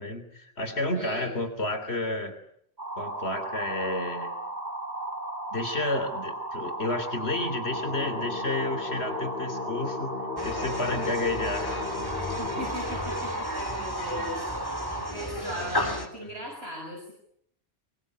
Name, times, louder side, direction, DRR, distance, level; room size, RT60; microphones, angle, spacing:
voice 1, 0.0-2.4 3.0-4.4 5.5-10.1 10.4-11.9 16.2-16.4, left 2 dB, 80° left, 9 dB, 3.5 m, -31 dB
voice 2, 0.9-1.3 12.4-14.4 14.9-17.1, equal, 80° right, 1 dB, 6.7 m, -38 dB
sound 1, 2.8-15.1, right 1 dB, 40° right, 4.7 m, -35 dB
sound 2, 7.7-13.3, left 5 dB, 60° left, 2.2 m, -36 dB
sound 3, 10.4-16.1, left 1 dB, 20° left, 3.6 m, -34 dB
25.0 x 22.5 x 9.6 m, 0.72 s
omnidirectional pair, 1.1 m